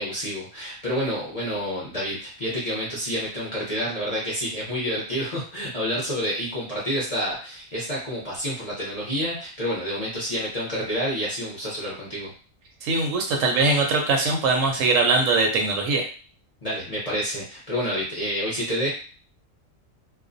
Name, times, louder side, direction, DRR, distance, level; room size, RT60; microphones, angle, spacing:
voice 1, 0.0-12.3 16.6-18.9, equal, 40° left, -6 dB, 0.6 m, -28 dB
voice 2, 12.8-16.1, right 3 dB, 75° right, 2 dB, 0.9 m, -21 dB
2.4 x 2.0 x 2.5 m, 0.39 s
omnidirectional pair, 1.4 m